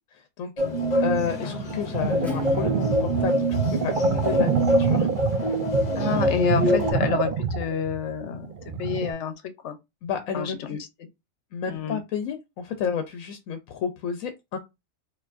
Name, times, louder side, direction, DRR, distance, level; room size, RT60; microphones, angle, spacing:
sound 1, 0.6-6.9, equal, 40° left, 0.8 m, -25 dB
voice 1, 1.0-5.1 10.0-10.8 11.5-14.6, left 7 dB, 90° left, 1.0 m, -31 dB
sound 2, 1.5-9.1, right 6 dB, 70° right, 0.4 m, -27 dB
Acoustic guitar / Strum, 2.2-7.7, left 1 dB, ahead, 0.8 m, -40 dB
voice 2, 6.0-8.5 8.8-9.3 9.6-9.8 10.3-10.8 11.7-12.0, left 7 dB, 65° left, 1.0 m, -28 dB
4.5 x 2.6 x 2.5 m
omnidirectional pair, 1.4 m